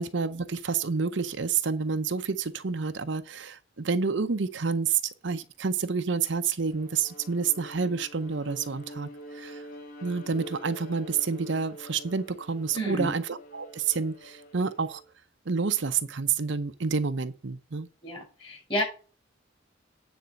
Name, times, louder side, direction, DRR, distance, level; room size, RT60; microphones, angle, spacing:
voice 1, 0.0-9.1 9.3-9.6 10.0-15.0 15.5-17.9, right 5 dB, 65° right, 0.7 m, -29 dB
Bowed string instrument, 6.7-15.1, equal, 45° left, 3.3 m, -46 dB
voice 2, 12.7-13.1 18.0-18.8, equal, 25° left, 5.6 m, -30 dB
9.5 x 4.3 x 7.4 m
head